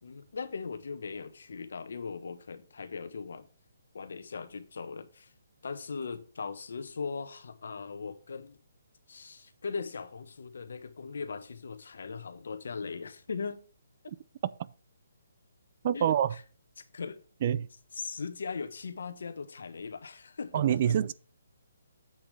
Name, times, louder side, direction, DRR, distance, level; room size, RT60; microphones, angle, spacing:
voice 1, 0.0-3.5 3.9-5.3 5.6-8.6 9.1-13.6 15.9-16.4 16.9-17.2 17.9-20.9, left 5 dB, 65° left, 1.2 m, -39 dB
voice 2, 15.8-16.3 17.4-17.7 20.5-21.1, right 10 dB, 30° right, 0.4 m, -26 dB
8.1 x 7.1 x 3.3 m
hypercardioid pair, 170°, 0 cm